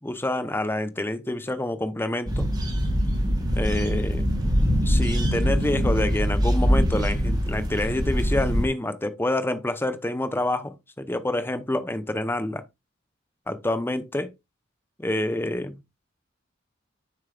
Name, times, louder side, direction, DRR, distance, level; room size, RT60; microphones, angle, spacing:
voice 1, 0.0-2.5 3.5-4.3 4.8-12.6 13.5-14.3 15.0-15.8, left 1 dB, 10° left, 0.7 m, -27 dB
sound 1, 2.3-8.7, equal, 20° right, 1.7 m, -23 dB
8.7 x 6.8 x 2.4 m
head